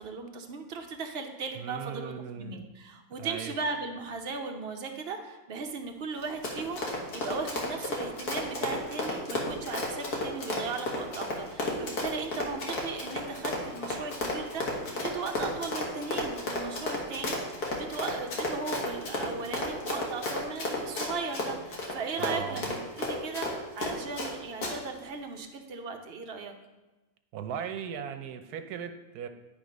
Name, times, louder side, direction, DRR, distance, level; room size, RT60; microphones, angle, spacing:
voice 1, 0.0-26.5, right 4 dB, 50° right, 4 dB, 0.9 m, -37 dB
voice 2, 1.5-2.7 3.2-3.6 22.2-22.6 27.3-29.3, right 8 dB, 80° right, 7 dB, 1.2 m, -37 dB
Run, 6.2-24.3 24.6-24.7, left 2 dB, 85° left, 1.8 m, -33 dB
10.0 x 3.6 x 5.1 m, 1.1 s
omnidirectional pair, 1.6 m